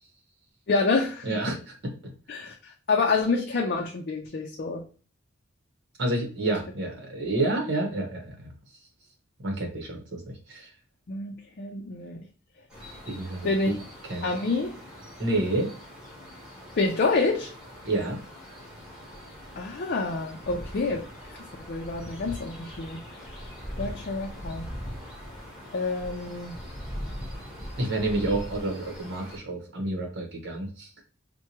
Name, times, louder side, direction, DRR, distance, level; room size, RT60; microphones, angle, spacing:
voice 1, 0.7-1.3 2.3-4.8 11.1-12.2 13.4-13.8 14.2-14.7 16.8-17.5 19.6-21.0 21.6-23.0 23.8-24.6 25.7-26.6, left 3 dB, 50° left, 0 dB, 0.5 m, -27 dB
voice 2, 1.2-1.6 1.8-2.1 6.0-8.5 9.4-10.7 13.1-13.7 14.1-14.3 15.2-15.7 17.8-18.2 27.8-30.9, right 2 dB, 60° right, 2 dB, 1.1 m, -29 dB
sound 1, 12.7-29.4, equal, 5° right, 1.3 m, -41 dB
4.5 x 2.2 x 2.9 m, 0.37 s
head